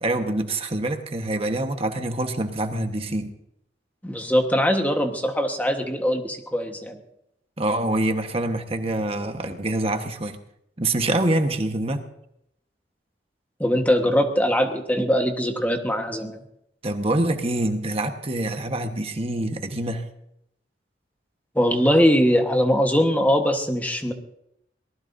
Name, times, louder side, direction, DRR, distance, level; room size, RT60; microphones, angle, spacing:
voice 1, 0.0-3.4 7.6-10.4 10.8-12.0 16.8-20.0, right 1 dB, 35° right, 6 dB, 1.3 m, -25 dB
voice 2, 4.0-7.0 13.6-16.4 21.5-24.1, equal, 10° left, 4 dB, 1.3 m, -21 dB
23.5 x 19.0 x 2.7 m, 0.78 s
head